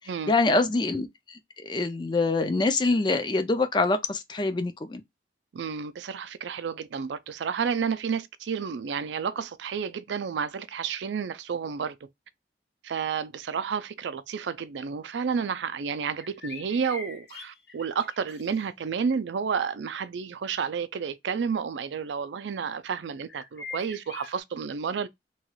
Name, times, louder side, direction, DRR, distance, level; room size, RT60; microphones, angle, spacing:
voice 1, 0.3-5.0, left 3 dB, 25° left, 0.4 m, -25 dB
voice 2, 5.5-12.0 12.8-25.1, right 6 dB, 90° right, 0.4 m, -31 dB
sound 1, 16.2-18.6 23.3-24.4, left 3 dB, 70° left, 1.0 m, -43 dB
2.9 x 2.3 x 2.9 m
head